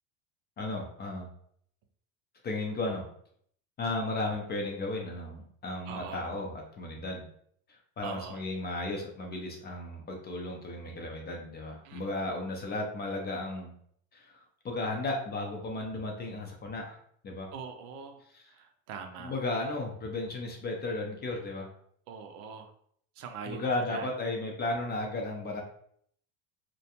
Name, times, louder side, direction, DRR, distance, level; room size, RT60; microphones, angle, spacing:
voice 1, 0.6-1.3 2.4-3.0 3.8-7.3 7.7-13.7 14.1-17.0 17.2-17.5 18.3-18.5 19.2-21.7 23.5-25.6, left 2 dB, 25° left, 1 dB, 0.4 m, -34 dB
voice 2, 5.9-6.3 8.0-8.4 11.8-12.1 17.5-18.2 18.5-19.3 22.1-22.7 23.2-24.1, right 6 dB, 80° right, 6 dB, 0.6 m, -42 dB
2.4 x 2.2 x 2.8 m, 0.65 s
supercardioid pair, 105°, 44 cm